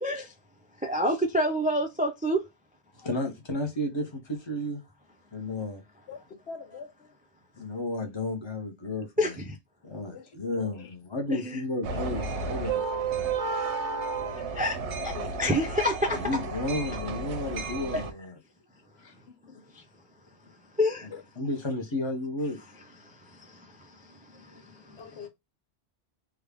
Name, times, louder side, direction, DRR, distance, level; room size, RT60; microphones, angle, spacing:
voice 1, 0.0-0.3 0.8-2.4 9.2-9.6 11.3-11.6 14.5-14.8 15.0-15.1 15.4-16.2 17.9-18.0 20.8-21.1 23.0-23.9 24.3-25.0, equal, 10° right, 0.4 m, -28 dB
voice 2, 3.0-4.8 5.3-5.8 7.6-9.1 9.8-13.1 16.1-18.3 21.4-22.6, left 1 dB, 25° left, 0.9 m, -32 dB
voice 3, 6.5-7.1 10.1-10.9 14.0-14.2 14.5-14.7 15.0-15.3 19.0-19.6 21.1-21.2 25.0-25.3, left 6 dB, 70° left, 1.1 m, -45 dB
sound 1, 11.8-18.1, right 4 dB, 85° right, 1.0 m, -32 dB
3.5 x 2.4 x 3.4 m
omnidirectional pair, 1.1 m